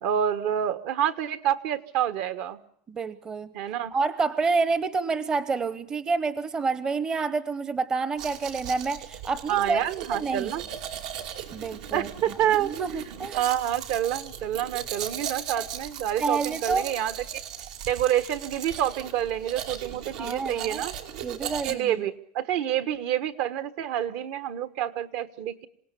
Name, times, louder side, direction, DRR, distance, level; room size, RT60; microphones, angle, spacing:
voice 1, 0.0-2.6 3.5-3.9 9.5-10.6 11.9-12.7 13.3-17.1 17.9-20.9 21.4-25.7, right 10 dB, 55° right, 12 dB, 1.4 m, -28 dB
voice 2, 2.9-3.5 3.9-9.8 10.1-10.5 11.5-13.5 16.2-16.9 20.2-20.9 21.2-22.0, right 4 dB, 20° right, 16 dB, 0.9 m, -28 dB
Domestic sounds home sounds, 8.2-21.8, right 9 dB, 75° right, 2.7 m, -38 dB
26.5 x 18.0 x 8.4 m, 0.68 s
supercardioid pair, 145°, 4 cm